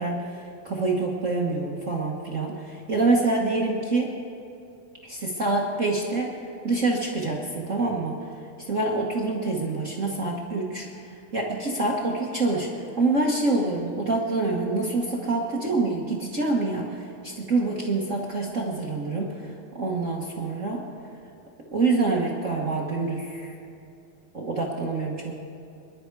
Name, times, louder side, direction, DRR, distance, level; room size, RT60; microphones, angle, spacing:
voice 1, 0.0-4.1 5.0-6.3 6.6-8.2 8.7-10.9 11.3-20.8 21.7-23.5 24.3-25.3, right 3 dB, 40° right, -2 dB, 1.1 m, -26 dB
27.5 x 11.0 x 4.7 m, 2.6 s
omnidirectional pair, 3.3 m